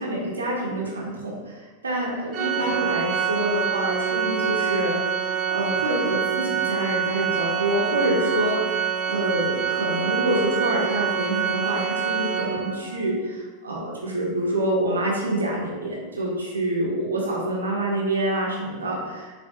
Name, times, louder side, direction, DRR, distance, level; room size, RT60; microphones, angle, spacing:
voice 1, 0.0-1.6 1.8-8.7 9.1-19.3, right 1 dB, 70° right, -2 dB, 1.6 m, -26 dB
Organ, 2.3-13.0, right 7 dB, 35° right, 0.7 m, -26 dB
6.9 x 6.4 x 2.5 m, 1.4 s
figure-of-eight pair, 90°, 0 cm